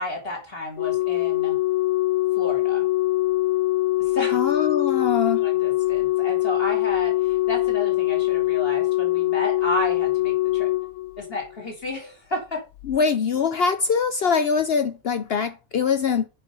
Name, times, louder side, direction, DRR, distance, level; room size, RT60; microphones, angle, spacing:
voice 1, 0.0-1.6 2.4-2.9 4.0-4.4 5.4-10.7 11.2-12.6, left 1 dB, 40° left, 3.0 m, -32 dB
Organ, 0.8-11.7 12.8-13.0, left 17 dB, 80° left, 1.0 m, -23 dB
voice 2, 4.3-5.4 12.9-16.3, left 6 dB, 60° left, 0.7 m, -23 dB
6.7 x 5.7 x 5.4 m
omnidirectional pair, 1.5 m